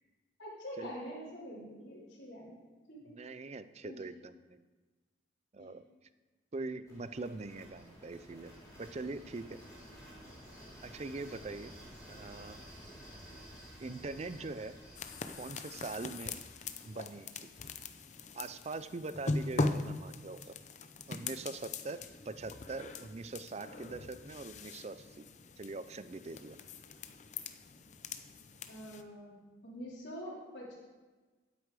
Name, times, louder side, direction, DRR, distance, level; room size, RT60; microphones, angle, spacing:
voice 1, 0.4-2.6 2.9-3.2 3.8-4.0 5.6-5.8 28.7-30.8, equal, 80° left, -7 dB, 3.6 m, -46 dB
voice 2, 3.1-4.6 5.5-5.8 6.5-8.5 8.8-9.6 10.8-11.8 12.1-12.6 13.8-14.8 15.4-16.4 16.8-17.3 18.3-20.5 21.1-25.3 25.6-26.6, right 3 dB, 35° right, 13 dB, 0.5 m, -42 dB
sound 1, 6.8-18.8, equal, 20° left, 3.6 m, -53 dB
sound 2, 14.9-29.0, left 3 dB, 40° left, 0.6 m, -41 dB
12.5 x 8.4 x 4.9 m, 1.3 s
head